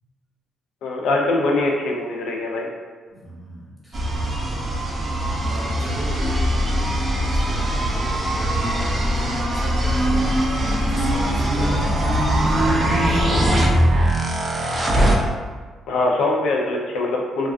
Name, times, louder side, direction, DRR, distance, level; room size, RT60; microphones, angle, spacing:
voice 1, 0.8-2.7 15.9-17.5, left 2 dB, 80° left, 0 dB, 0.4 m, -22 dB
voice 2, 3.1-4.1 5.4-13.9, equal, ahead, -7 dB, 1.0 m, -35 dB
sound 1, 3.9-15.2, right 1 dB, 35° right, 0.4 m, -21 dB
2.3 x 2.3 x 2.3 m, 1.5 s
cardioid pair, 90°, 0 cm